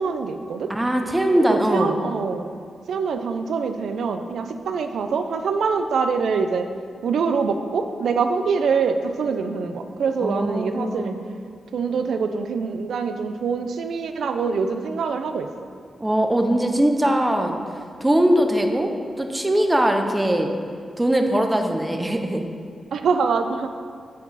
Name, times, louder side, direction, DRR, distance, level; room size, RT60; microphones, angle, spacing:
voice 1, 0.0-0.7 1.3-2.5 2.9-6.7 7.0-11.2 11.7-15.5 22.9-23.7, right 5 dB, 80° right, 7 dB, 0.4 m, -24 dB
voice 2, 0.7-2.0 10.2-11.2 16.0-17.6 18.0-18.9 19.2-20.5 21.0-22.4, right 1 dB, 10° right, 4 dB, 0.5 m, -21 dB
8.1 x 4.7 x 4.0 m, 2.2 s
wide cardioid pair, 130°, 0 cm